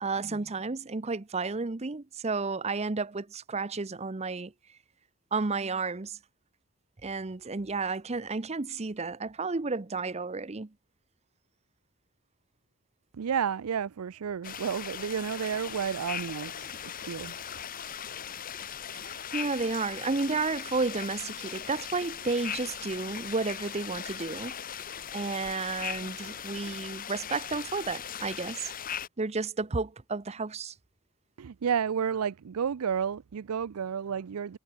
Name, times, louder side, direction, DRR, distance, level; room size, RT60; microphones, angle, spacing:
voice 1, 0.0-4.5 5.3-6.2 7.0-10.7 18.9-24.5 25.1-28.7 29.2-30.7, right 4 dB, 30° right, 0.7 m, -32 dB
voice 2, 13.2-17.4 31.4-34.6, right 7 dB, 80° right, 0.5 m, -31 dB
sound 1, 14.4-29.1, left 8 dB, 40° left, 1.1 m, -39 dB
head